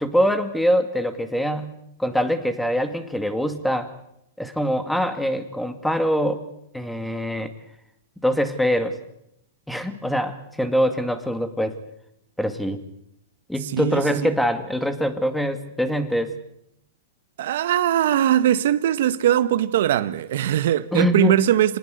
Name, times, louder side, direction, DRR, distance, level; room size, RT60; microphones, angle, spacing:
voice 1, 0.0-3.9 4.4-6.4 6.7-7.5 8.2-9.0 9.7-11.8 12.4-12.8 13.5-16.3 20.9-21.4, equal, ahead, 2.3 m, -23 dB
voice 2, 13.6-14.3 17.4-21.8, right 11 dB, 70° right, 1.3 m, -21 dB
26.5 x 19.5 x 7.9 m
hypercardioid pair, 130°, 0 cm